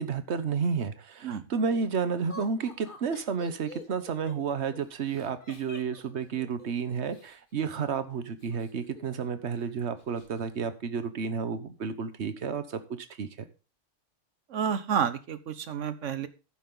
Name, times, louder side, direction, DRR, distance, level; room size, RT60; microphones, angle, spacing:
voice 1, 0.0-13.3, right 6 dB, 65° right, 12 dB, 1.4 m, -31 dB
Laughter, 2.3-7.4 8.4-9.3 9.6-9.7 10.0-10.5, left 3 dB, 45° left, 1.7 m, -48 dB
voice 2, 14.5-16.3, right 7 dB, 80° right, 13 dB, 1.3 m, -30 dB
11.5 x 9.1 x 3.9 m, 0.32 s
omnidirectional pair, 1.2 m